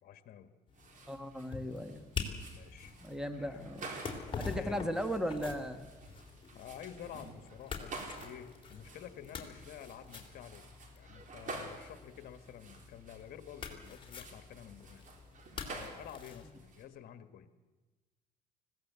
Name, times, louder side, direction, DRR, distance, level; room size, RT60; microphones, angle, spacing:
voice 1, 0.0-0.5 2.5-3.0 3.4-3.6 4.5-4.9 6.5-10.7 10.9-15.1 15.7-17.5, left 9 dB, 60° left, 9 dB, 1.5 m, -50 dB
sound 1, 0.7-16.5, left 5 dB, 30° left, 3.3 m, -46 dB
sound 2, 0.7-16.8, right 3 dB, 50° right, 3.9 m, -50 dB
voice 2, 1.1-2.0 3.0-3.9 4.4-5.9, equal, 5° right, 8 dB, 1.9 m, -37 dB
20.0 x 16.0 x 8.2 m, 1.2 s
cardioid pair, 110°, 17 cm